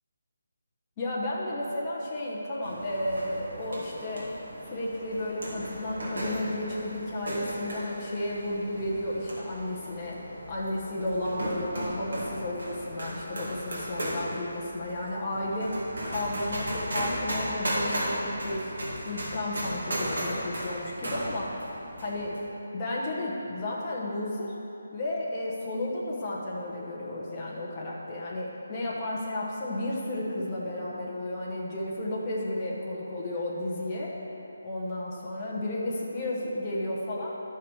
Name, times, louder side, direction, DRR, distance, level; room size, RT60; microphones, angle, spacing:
voice 1, 1.0-4.3 4.7-18.7 19.0-21.6 22.0-22.4 22.7-24.5 24.9-34.1 34.6-37.4, left 1 dB, 15° left, -6 dB, 1.0 m, -33 dB
sound 1, 2.6-22.4, equal, 60° right, 2.2 m, -36 dB
12.0 x 5.7 x 4.9 m, 3.0 s
hypercardioid pair, 180°, 0 cm